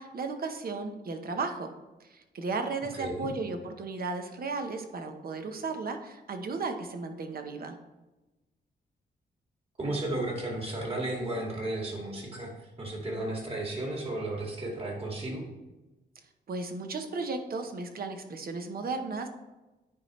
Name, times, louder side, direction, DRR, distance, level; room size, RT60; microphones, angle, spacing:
voice 1, 0.0-1.7 2.0-7.8 16.5-19.3, right 3 dB, 55° right, 6 dB, 0.9 m, -35 dB
voice 2, 2.9-3.3 9.8-15.4, right 1 dB, 35° right, -1 dB, 2.2 m, -34 dB
9.8 x 4.3 x 3.2 m, 1.1 s
cardioid pair, 85°, 18 cm